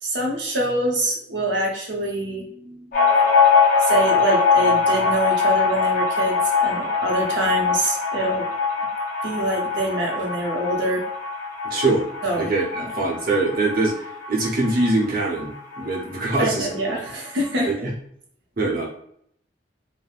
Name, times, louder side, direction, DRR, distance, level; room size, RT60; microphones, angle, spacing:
voice 1, 0.0-3.2 3.8-8.5 9.2-11.0 12.2-12.9 16.4-17.9, right 1 dB, 80° right, -1 dB, 0.8 m, -25 dB
sound 1, 2.9-16.0 16.3-16.4 16.7-17.5, left 5 dB, 45° left, 0.8 m, -22 dB
voice 2, 11.7-12.0 12.4-13.9 14.3-16.7 17.8-17.9 18.6-18.9, right 2 dB, 50° right, -2 dB, 0.8 m, -23 dB
3.3 x 2.1 x 2.4 m, 0.67 s
head